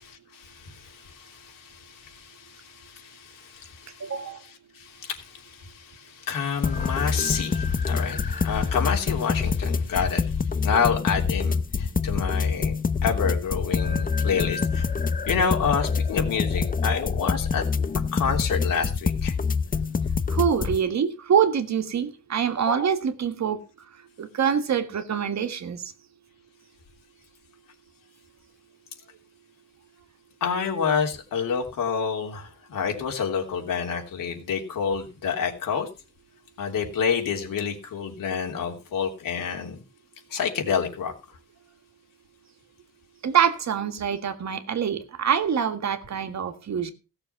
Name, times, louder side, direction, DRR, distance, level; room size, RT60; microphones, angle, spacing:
voice 1, 0.3-10.4 10.6-12.7 13.0-14.9 15.3-17.6 18.1-19.4 30.4-35.9 36.6-39.8 40.3-41.4, left 6 dB, 80° left, 3.2 m, -28 dB
voice 2, 4.0-4.4 20.3-23.6 24.2-25.9 43.2-46.9, right 7 dB, 55° right, 1.8 m, -25 dB
sound 1, 6.6-20.8, left 5 dB, 25° left, 0.7 m, -26 dB
16.5 x 6.9 x 5.9 m
cardioid pair, 130°, 33 cm